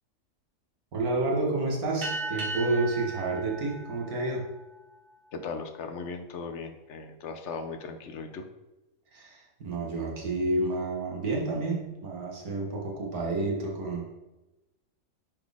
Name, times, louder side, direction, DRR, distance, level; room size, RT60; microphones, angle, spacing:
voice 1, 0.9-4.5 9.1-14.1, right 2 dB, 85° right, -2 dB, 1.9 m, -30 dB
sound 1, 2.0-5.0, right 2 dB, 40° right, 1.2 m, -37 dB
voice 2, 5.3-8.5, left 4 dB, 60° left, 7 dB, 0.9 m, -38 dB
9.5 x 4.2 x 3.5 m, 1.0 s
omnidirectional pair, 1.5 m